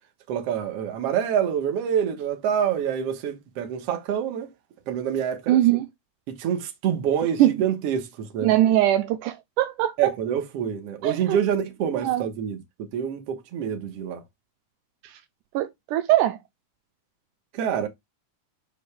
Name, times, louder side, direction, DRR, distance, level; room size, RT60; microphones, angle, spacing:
voice 1, 0.3-4.5 4.9-5.6 6.3-8.5 10.0-12.6 12.9-14.2 17.5-17.9, right 8 dB, 55° right, 2.0 m, -26 dB
voice 2, 5.5-5.9 7.4-7.6 8.4-10.1 11.0-11.4 12.0-12.3 15.0-15.2 15.5-16.4, right 13 dB, 80° right, 2.1 m, -21 dB
9.8 x 5.2 x 2.3 m
omnidirectional pair, 3.8 m